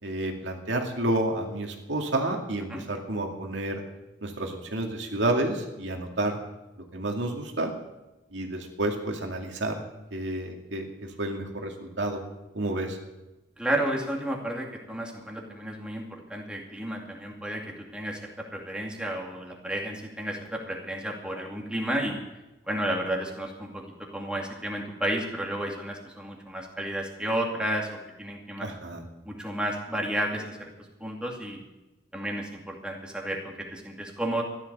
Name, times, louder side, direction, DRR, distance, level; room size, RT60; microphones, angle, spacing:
voice 1, 0.0-3.8 4.2-6.4 6.9-7.7 8.3-9.8 10.1-12.2 12.5-13.0 28.6-29.0, right 1 dB, 80° right, 2 dB, 2.3 m, -30 dB
voice 2, 13.6-17.6 17.9-18.2 18.5-22.2 22.6-23.8 24.1-28.7 29.2-30.7 31.0-31.6 32.1-34.4, right 1 dB, 5° right, -1 dB, 2.3 m, -32 dB
14.0 x 11.5 x 6.8 m, 1.0 s
head